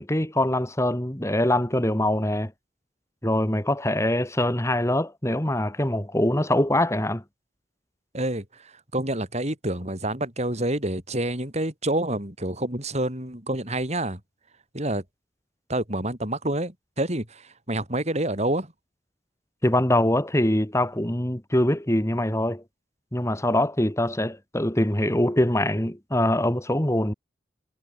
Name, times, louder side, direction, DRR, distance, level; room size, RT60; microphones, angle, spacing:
voice 1, 0.0-2.5 3.2-7.2 19.6-22.6 23.1-27.1, left 1 dB, 15° left, 2.2 m, -23 dB
voice 2, 8.1-14.2 14.7-15.0 15.7-17.4 17.7-18.7, right 1 dB, 35° right, 6.0 m, -28 dB
head